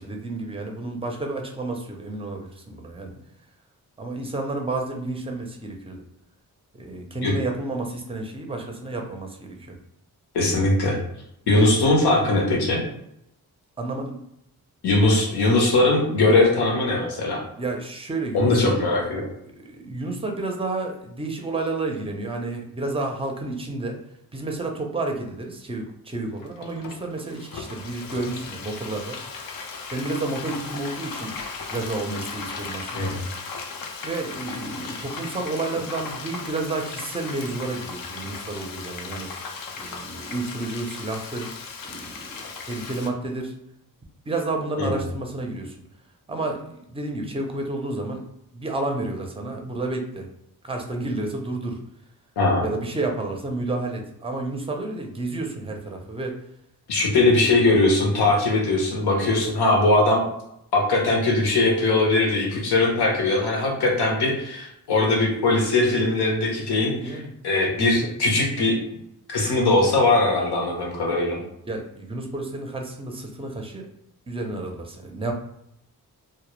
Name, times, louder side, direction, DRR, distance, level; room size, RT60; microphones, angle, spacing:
voice 1, 0.0-3.1 4.0-6.0 6.7-9.8 13.8-14.2 17.6-18.8 19.6-24.0 24.3-29.2 29.9-31.3 31.7-33.1 34.0-39.3 39.8-41.5 41.8-43.5 44.3-45.8 46.3-48.3 48.5-50.3 50.6-51.8 52.6-56.4 67.0-67.3 68.0-68.1 71.4-73.9 74.3-75.3, right 2 dB, 15° right, 3 dB, 0.5 m, -30 dB
voice 2, 10.3-11.0 11.5-12.8 14.8-17.4 18.3-19.2 32.9-33.2 44.8-45.0 52.4-52.6 56.9-60.2 60.7-68.8 69.3-71.4, left 2 dB, 85° left, 0 dB, 0.8 m, -20 dB
Frying (food), 26.4-43.1, left 4 dB, 60° left, 0.5 m, -37 dB
2.1 x 2.0 x 3.0 m, 0.78 s
cardioid pair, 60°, 38 cm